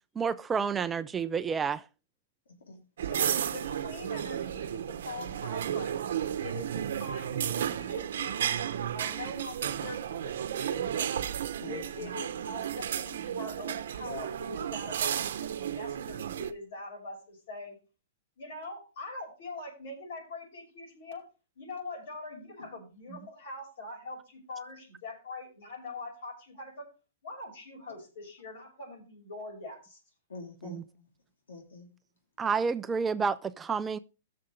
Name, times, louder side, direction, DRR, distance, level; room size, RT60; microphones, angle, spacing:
voice 1, 0.2-1.8 30.6-30.8 32.4-34.0, right 5 dB, 15° right, 0.4 m, -30 dB
voice 2, 2.5-2.8 11.5-12.1 30.3-31.1 31.5-31.9, left 3 dB, 85° left, 3.0 m, -46 dB
voice 3, 3.0-6.0 6.4-8.6 8.9-11.1 11.6-17.8 18.4-21.2 21.6-26.9 27.2-30.0, left 2 dB, 60° left, 5.7 m, -43 dB
sound 1, 3.0-16.5, right 9 dB, 75° right, 0.8 m, -33 dB
14.5 x 6.7 x 3.2 m
hypercardioid pair, 135°, 0 cm